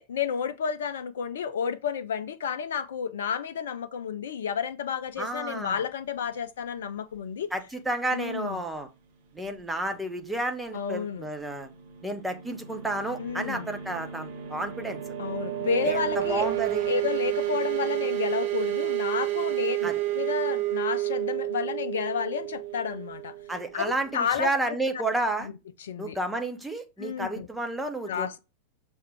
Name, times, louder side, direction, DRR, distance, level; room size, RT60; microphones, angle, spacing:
voice 1, 0.0-7.5 8.1-8.6 10.7-11.3 13.2-13.7 15.2-16.5 16.9-19.9 20.1-23.3 23.7-24.5 25.4-25.5 25.8-26.2 27.0-27.5 28.1-28.4, left 7 dB, 60° left, 0.4 m, -31 dB
voice 2, 5.2-5.8 7.5-8.9 9.3-11.7 12.0-15.1 15.8-16.8 19.8-19.9 23.5-25.5 26.0-28.4, right 2 dB, 5° right, 1.1 m, -31 dB
sound 1, 11.6-24.1, right 14 dB, 50° right, 1.6 m, -31 dB
6.4 x 3.5 x 4.5 m
figure-of-eight pair, 90°, 0 cm